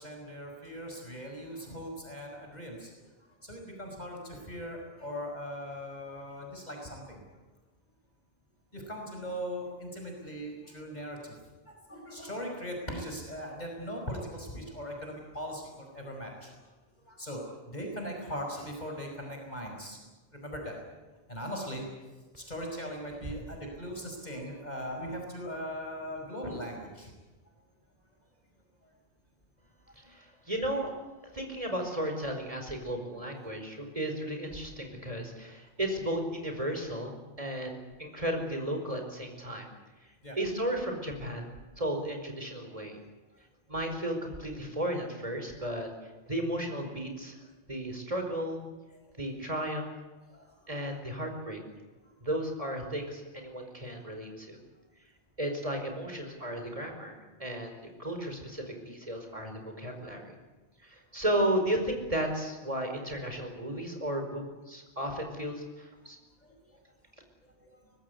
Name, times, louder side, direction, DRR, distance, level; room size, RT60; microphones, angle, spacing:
voice 1, 0.0-2.9 3.4-7.2 8.7-11.3 11.7-16.6 17.0-20.0 20.3-20.8 21.3-21.9 22.4-27.1 30.0-30.1 40.2-40.4 50.3-50.5 58.0-58.2 66.4-66.8 67.7-67.9, equal, 40° left, 1 dB, 5.6 m, -39 dB
voice 2, 30.1-30.9 31.3-39.7 40.4-43.0 43.7-45.9 46.3-47.4 47.7-48.6 49.2-49.9 50.7-51.6 52.2-54.6 55.4-60.3 60.8-66.2, right 1 dB, 35° right, 4 dB, 5.1 m, -34 dB
24.0 x 19.5 x 8.3 m, 1.2 s
omnidirectional pair, 1.1 m